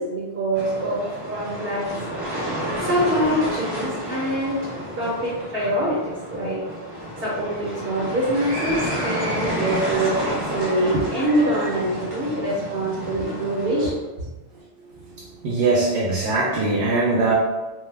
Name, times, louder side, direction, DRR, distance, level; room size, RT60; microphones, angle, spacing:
voice 1, 0.0-1.9 2.9-6.6 7.2-14.3, right 1 dB, 60° right, -6 dB, 1.0 m, -25 dB
sound 1, 0.5-13.9, equal, 25° right, 0.7 m, -30 dB
voice 2, 14.9-17.3, right 3 dB, 85° right, -5 dB, 0.9 m, -22 dB
2.7 x 2.3 x 3.2 m, 1.2 s
omnidirectional pair, 1.2 m